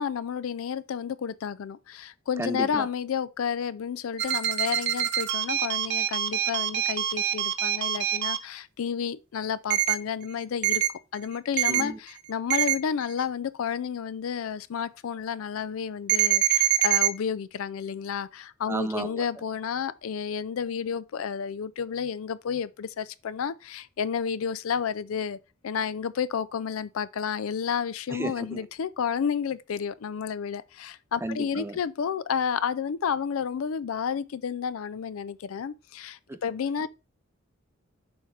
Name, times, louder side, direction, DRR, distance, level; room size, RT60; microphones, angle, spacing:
voice 1, 0.0-10.8 11.1-25.4 25.6-36.9, left 7 dB, 80° left, 0.4 m, -31 dB
voice 2, 2.4-2.9 11.7-12.0 18.7-19.2 28.1-28.6 31.2-31.8 36.3-36.4, right 1 dB, 10° right, 0.5 m, -33 dB
sound 1, 4.2-8.4 9.7-9.9 10.6-10.9 11.6-11.8 12.5-12.8 16.1-17.1, right 12 dB, 55° right, 0.6 m, -24 dB
7.0 x 4.9 x 3.3 m
head